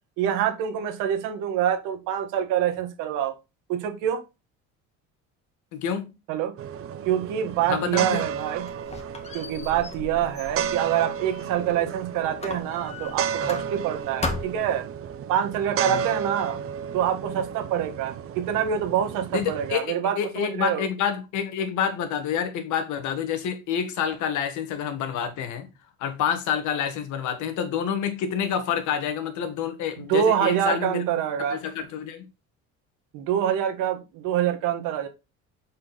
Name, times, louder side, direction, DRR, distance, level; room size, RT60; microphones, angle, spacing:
voice 1, 0.2-3.3 3.7-4.2 6.3-6.5 7.0-8.7 9.3-14.8 15.3-16.6 16.9-20.9 30.0-31.6 33.1-35.1, right 9 dB, 85° right, 1.7 m, -26 dB
voice 2, 5.7-6.1 7.7-8.2 15.9-16.1 19.3-25.7 26.0-31.0 31.5-32.3, left 8 dB, 70° left, 1.7 m, -28 dB
sound 1, 6.6-19.8, right 8 dB, 45° right, 0.8 m, -33 dB
Squeak, 8.1-11.9 12.4-13.9 14.2-14.8, left 3 dB, 20° left, 1.7 m, -36 dB
7.4 x 4.5 x 4.1 m
cardioid pair, 120°, 31 cm